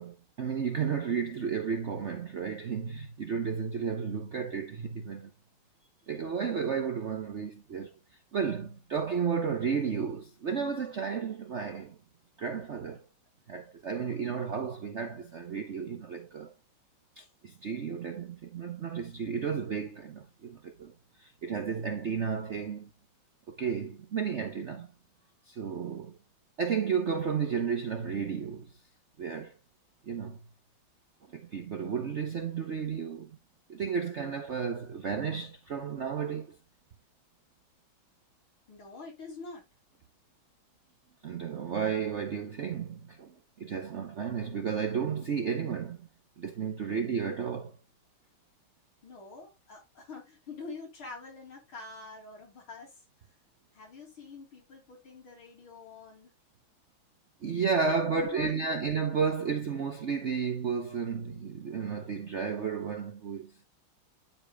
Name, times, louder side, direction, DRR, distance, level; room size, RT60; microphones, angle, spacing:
voice 1, 0.0-5.3 6.1-7.9 8.3-12.0 12.4-13.0 13.5-16.5 17.2-22.9 23.5-24.9 25.5-26.2 26.6-28.7 29.2-29.5 30.1-30.4 31.3-33.3 33.7-36.6 41.2-46.1 46.4-47.8 57.4-63.5, right 6 dB, 60° right, 0.7 m, -33 dB
voice 2, 38.7-39.6 49.0-53.0 53.7-56.3 58.1-59.0, left 3 dB, 80° left, 4.6 m, -46 dB
12.0 x 5.0 x 2.3 m
omnidirectional pair, 2.2 m